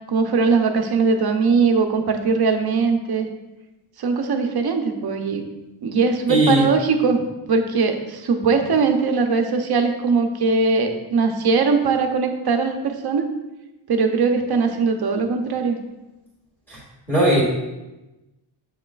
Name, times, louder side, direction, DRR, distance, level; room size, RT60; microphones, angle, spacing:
voice 1, 0.1-3.3 4.0-5.4 5.8-13.3 13.9-15.8, right 4 dB, 50° right, 5 dB, 0.7 m, -20 dB
voice 2, 6.3-6.7 16.7-16.8 17.1-17.4, right 1 dB, 5° left, -7 dB, 2.1 m, -17 dB
7.5 x 5.5 x 2.3 m, 1.1 s
wide cardioid pair, 145°, 48 cm